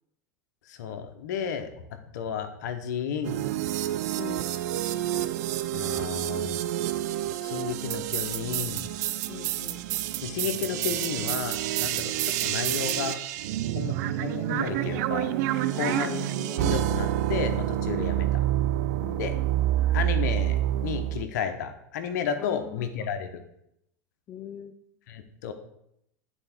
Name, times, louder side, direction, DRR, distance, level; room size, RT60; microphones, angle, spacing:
voice 1, 0.7-3.5 5.7-6.6 7.4-8.8 10.2-13.2 13.7-15.3 15.7-16.2 16.5-18.5 19.2-19.3 19.9-23.4 25.1-25.5, left 7 dB, 70° left, 8 dB, 1.0 m, -33 dB
sound 1, 3.2-21.2, right 13 dB, 65° right, 0.5 m, -28 dB
voice 2, 4.1-4.5 9.3-9.8 15.8-16.7 19.0-19.7 22.4-23.1 24.3-24.7, left 9 dB, 35° left, 9 dB, 0.5 m, -42 dB
9.9 x 4.4 x 4.5 m, 0.78 s
hypercardioid pair, 90°, 10 cm